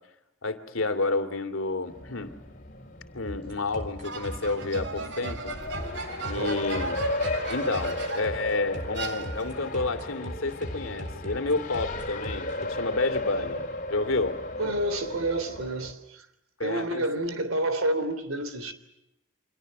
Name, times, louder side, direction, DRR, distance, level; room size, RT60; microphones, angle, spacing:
voice 1, 0.4-2.3 3.1-5.5 6.3-7.0 7.5-14.7 16.6-17.0, left 3 dB, 75° left, 2.6 m, -30 dB
Race car auto racing, 1.9-15.9, left 2 dB, 40° left, 3.5 m, -35 dB
sound 1, 3.3-12.7, equal, 35° right, 4.2 m, -39 dB
sound 2, 4.0-8.4 8.9-9.7, right 4 dB, 55° right, 2.5 m, -37 dB
voice 2, 14.6-16.3 16.6-18.7, right 1 dB, 85° right, 3.5 m, -29 dB
29.5 x 25.0 x 6.6 m
head